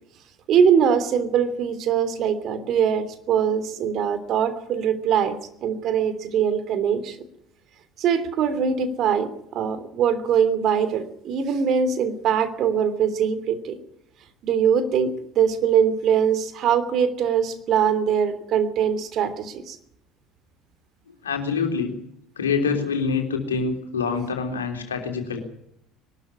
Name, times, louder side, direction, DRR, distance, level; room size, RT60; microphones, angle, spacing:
voice 1, 0.5-7.2 8.0-13.8 14.4-19.7, right 7 dB, 55° right, 11 dB, 3.1 m, -22 dB
voice 2, 21.2-22.0 22.4-25.4, left 5 dB, 90° left, 4 dB, 3.4 m, -25 dB
21.5 x 13.0 x 9.9 m, 0.77 s
hypercardioid pair, 65°, 0 cm